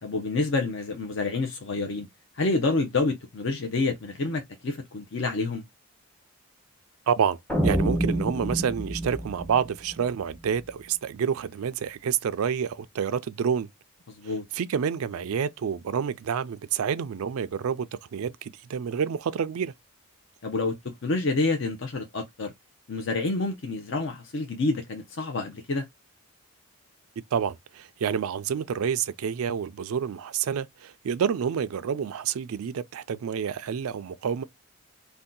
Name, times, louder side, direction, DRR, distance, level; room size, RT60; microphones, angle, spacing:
voice 1, 0.0-2.1 2.4-5.6 14.2-14.4 20.4-20.7 21.0-22.5 22.9-25.8, left 3 dB, 55° left, 0.5 m, -28 dB
voice 2, 7.1-13.7 14.2-19.7 27.3-34.4, right 7 dB, 75° right, 0.4 m, -28 dB
sound 1, 7.5-10.6, equal, 5° left, 0.6 m, -28 dB
2.7 x 2.2 x 3.7 m
head